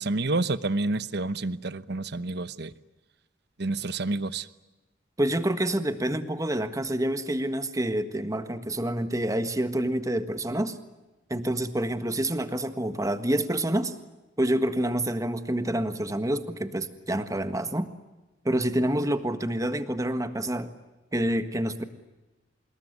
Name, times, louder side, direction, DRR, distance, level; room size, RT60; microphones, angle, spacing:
voice 1, 0.0-2.7 3.6-4.5, right 2 dB, 60° right, 15 dB, 1.0 m, -29 dB
voice 2, 5.2-10.8 11.3-13.9 14.4-17.9 18.4-20.7 21.1-21.8, right 1 dB, 20° right, 10 dB, 1.6 m, -27 dB
26.0 x 21.5 x 9.7 m, 1.1 s
head